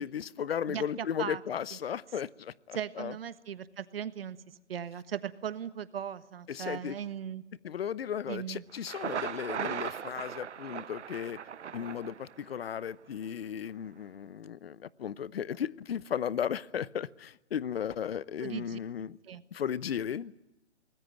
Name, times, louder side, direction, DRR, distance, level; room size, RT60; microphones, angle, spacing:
voice 1, 0.0-3.2 6.5-7.0 7.6-11.4 11.7-19.2 19.5-20.3, left 8 dB, 55° left, 21 dB, 0.9 m, -35 dB
voice 2, 0.7-1.4 1.7-1.8 2.7-7.4 8.3-8.6 18.4-18.8 19.2-19.4, right 9 dB, 55° right, 14 dB, 1.4 m, -38 dB
Thunder, 8.7-12.7, right 8 dB, 75° right, 0.9 m, -38 dB
24.0 x 20.0 x 9.2 m, 1.0 s
hypercardioid pair, 150°, 35 cm